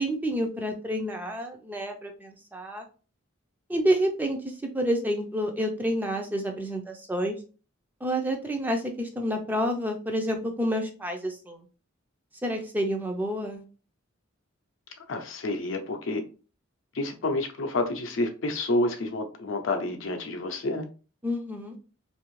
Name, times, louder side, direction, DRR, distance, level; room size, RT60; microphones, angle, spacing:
voice 1, 0.0-2.8 3.7-4.4 4.7-7.4 8.0-11.6 12.4-13.6 21.2-21.7, equal, 10° right, 0.4 m, -29 dB
voice 2, 15.1-16.2 16.9-20.9, left 2 dB, 65° left, 0.6 m, -29 dB
2.7 x 2.5 x 3.0 m
head